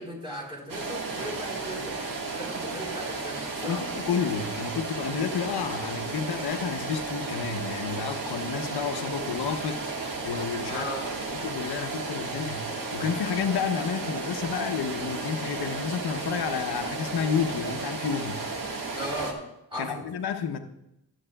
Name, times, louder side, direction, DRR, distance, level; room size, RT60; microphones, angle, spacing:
voice 1, 0.0-2.0 2.3-3.9 10.7-11.1 19.0-20.0, equal, 15° right, -3 dB, 3.8 m, -37 dB
sound 1, 0.7-19.3, right 3 dB, 60° right, 1.6 m, -34 dB
voice 2, 3.6-10.8 11.3-18.5 19.8-20.6, left 7 dB, 85° left, 6 dB, 0.8 m, -30 dB
21.5 x 8.1 x 2.3 m, 0.83 s
wide cardioid pair, 125°, 38 cm